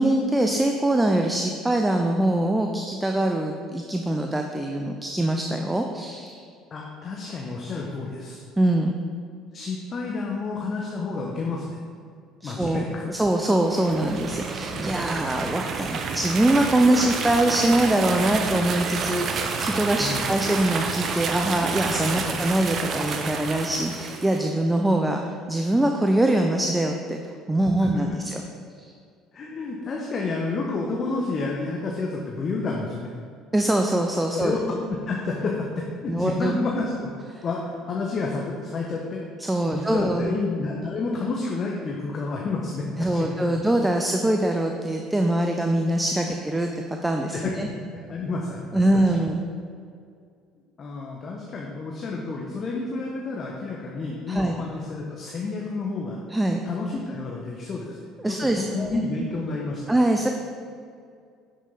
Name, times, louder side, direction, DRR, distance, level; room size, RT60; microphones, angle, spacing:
voice 1, 0.0-6.4 8.6-9.0 12.4-25.2 25.5-27.2 27.5-28.4 33.5-34.5 36.1-36.6 39.4-40.4 43.0-46.7 47.0-47.7 48.7-49.4 54.3-54.6 56.3-56.6 58.2-59.0 59.9-60.3, right 1 dB, 10° right, 3 dB, 0.7 m, -23 dB
voice 2, 6.7-8.4 9.5-11.8 12.4-13.1 20.0-20.3 22.1-22.3 27.8-28.2 29.3-33.1 34.3-37.1 37.4-39.2 39.7-43.4 47.3-48.8 50.8-56.2 56.6-58.0 58.2-59.8, left 3 dB, 40° left, -1 dB, 1.2 m, -30 dB
sound 1, 13.6-24.5, right 5 dB, 50° right, 0.9 m, -29 dB
10.0 x 6.3 x 4.1 m, 2.2 s
hypercardioid pair, 60°, 0 cm